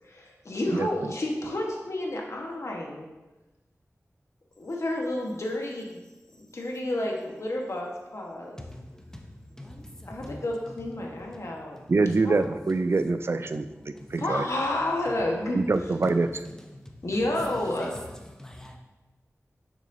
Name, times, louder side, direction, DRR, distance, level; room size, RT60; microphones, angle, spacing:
voice 1, 0.0-3.1 4.6-6.0 6.4-8.6 10.1-11.8 12.2-12.4 13.9-15.6 17.0-17.9, left 1 dB, 65° left, 1.2 m, -30 dB
voice 2, 8.7-9.2 9.5-10.4 11.7-11.8 13.9-14.1 18.4-18.8, left 1 dB, 10° left, 0.8 m, -44 dB
voice 3, 11.9-13.7 14.1-14.4 15.5-16.3, right 3 dB, 50° right, 0.3 m, -24 dB
6.6 x 6.1 x 2.6 m
wide cardioid pair, 70°, 5 cm